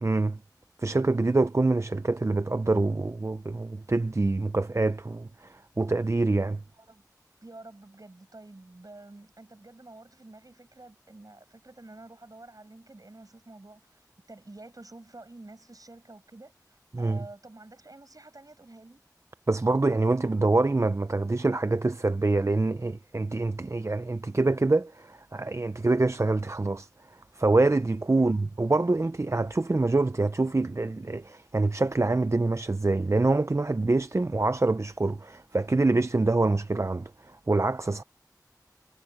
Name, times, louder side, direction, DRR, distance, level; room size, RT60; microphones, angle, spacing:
voice 1, 0.0-0.4 0.8-6.6 16.9-17.2 19.5-26.9 27.4-38.0, right 2 dB, 45° right, 0.5 m, -25 dB
voice 2, 6.7-7.0 7.4-19.0 28.2-28.5, right 2 dB, 60° right, 6.9 m, -49 dB
wide cardioid pair, 50°, 7 cm